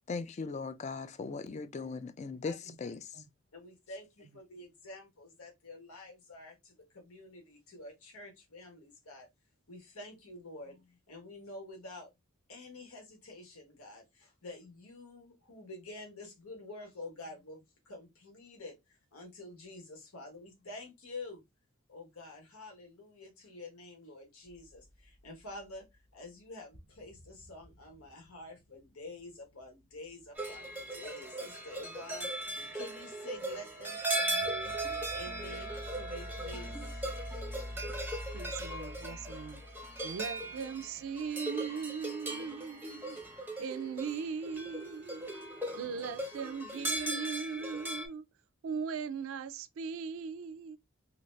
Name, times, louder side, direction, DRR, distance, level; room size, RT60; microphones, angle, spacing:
voice 1, 0.1-3.2, left 4 dB, 30° left, 0.3 m, -39 dB
voice 2, 3.5-9.3 9.7-12.1 12.5-21.4 21.9-25.8 26.1-37.1, left 2 dB, 90° left, 1.2 m, -48 dB
sound 1, 24.5-25.9 26.3-26.4 26.7-31.1 34.2-41.3, left 1 dB, 55° left, 0.9 m, -47 dB
sound 2, 30.4-48.1, right 2 dB, 10° right, 0.6 m, -38 dB
voice 3, 38.3-39.6 40.0-43.2 43.6-45.3 45.8-48.2 48.6-50.8, right 6 dB, 70° right, 0.4 m, -39 dB
2.8 x 2.6 x 3.1 m
head